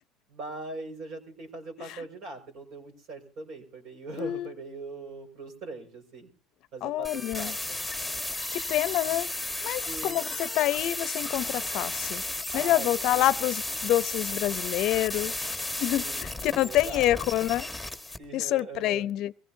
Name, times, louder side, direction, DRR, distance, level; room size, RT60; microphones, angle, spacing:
voice 1, 0.3-6.3 6.7-7.8 9.8-10.3 12.5-13.3 15.9-17.1 18.2-19.1, right 3 dB, 60° right, 5.5 m, -41 dB
voice 2, 4.2-4.5 6.8-7.5 8.5-9.3 9.6-12.2 12.5-15.3 15.8-17.7 18.3-19.3, left 14 dB, 60° left, 0.6 m, -27 dB
sound 1, 7.0-18.2, left 2 dB, ahead, 1.6 m, -34 dB
23.0 x 16.5 x 2.8 m
supercardioid pair, 115°, 0 cm